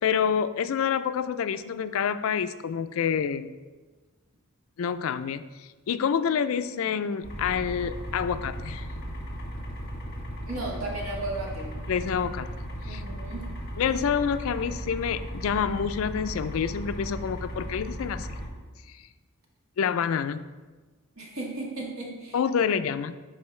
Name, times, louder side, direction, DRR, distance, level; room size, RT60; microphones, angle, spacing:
voice 1, 0.0-3.5 4.8-5.5 5.9-8.9 11.9-12.5 12.9-13.0 13.8-18.3 19.8-20.4 22.3-23.2, left 7 dB, 70° left, 12 dB, 0.4 m, -27 dB
sound 1, 7.2-18.5, equal, 50° left, 1.9 m, -36 dB
voice 2, 10.5-11.7 12.8-13.5 21.1-22.4, right 2 dB, 70° right, -2 dB, 1.7 m, -35 dB
10.5 x 4.4 x 3.2 m, 1.3 s
head